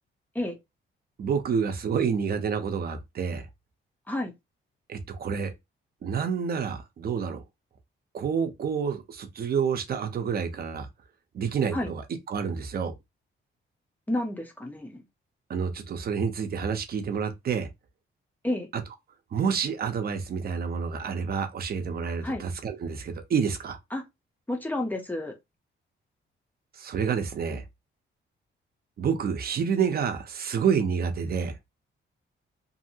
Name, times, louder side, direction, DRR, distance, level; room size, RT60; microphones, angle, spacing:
voice 1, 1.2-3.5 4.9-5.5 6.0-7.4 8.1-10.9 11.3-12.0 12.3-12.9 15.5-17.7 18.7-18.8 19.3-23.8 26.8-27.6 29.0-31.5, right 6 dB, 45° right, 0.6 m, -28 dB
voice 2, 14.1-15.0 18.4-18.7 22.2-22.4 23.9-24.0 24.5-25.4, left 1 dB, 10° left, 0.6 m, -30 dB
2.7 x 2.5 x 2.7 m
wide cardioid pair, 155°, 21 cm